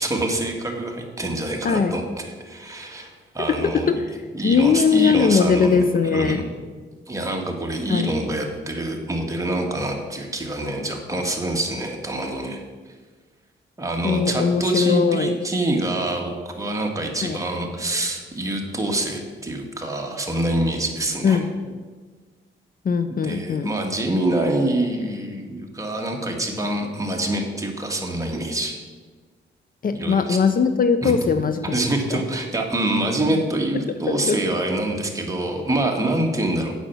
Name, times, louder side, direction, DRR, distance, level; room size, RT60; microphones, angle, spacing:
voice 1, 0.0-4.0 4.3-6.5 7.1-12.6 13.8-21.4 23.1-28.8 29.9-30.4 31.0-31.2 31.6-36.7, right 1 dB, 15° right, 1 dB, 1.7 m, -26 dB
voice 2, 1.6-1.9 3.5-4.0 4.4-6.4 7.9-8.1 14.0-15.3 17.2-17.4 21.2-21.8 22.8-23.7 29.8-31.8 32.1-32.2 34.1-34.4, left 5 dB, 45° left, 10 dB, 0.6 m, -20 dB
8.8 x 5.8 x 7.1 m, 1.4 s
cardioid pair, 90°, 20 cm